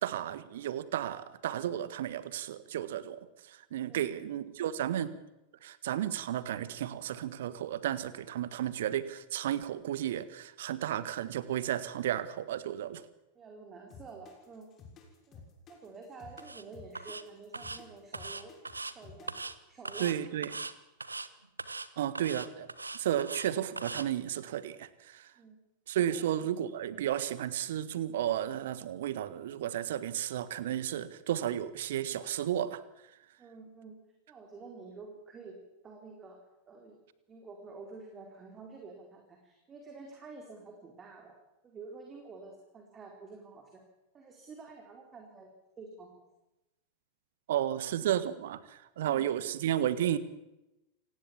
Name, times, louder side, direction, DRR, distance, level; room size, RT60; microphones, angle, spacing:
voice 1, 0.0-5.1 5.6-13.0 20.0-20.5 22.0-22.7 22.9-25.3 25.9-32.8 47.5-50.2, right 11 dB, 55° right, 16 dB, 1.6 m, -33 dB
voice 2, 13.3-14.7 15.3-15.4 15.7-18.6 18.9-19.4 19.7-20.3 25.4-25.5 26.1-26.5 33.4-34.0 34.3-37.0 37.3-41.4 41.6-43.8 44.1-45.5 45.8-46.2, right 4 dB, 25° right, 2 dB, 4.4 m, -49 dB
sound 1, 13.9-19.5, left 6 dB, 30° left, 6.4 m, -53 dB
sound 2, 16.4-16.6 16.9-17.2 17.5-17.8 18.1-18.9 19.3-19.5 19.8-20.1 20.4-20.7 21.0-21.3 21.6-21.9 22.1-23.5 23.8-24.0, right 3 dB, 80° right, 1.3 m, -40 dB
28.0 x 19.0 x 7.4 m, 0.95 s
figure-of-eight pair, 90°, 0 cm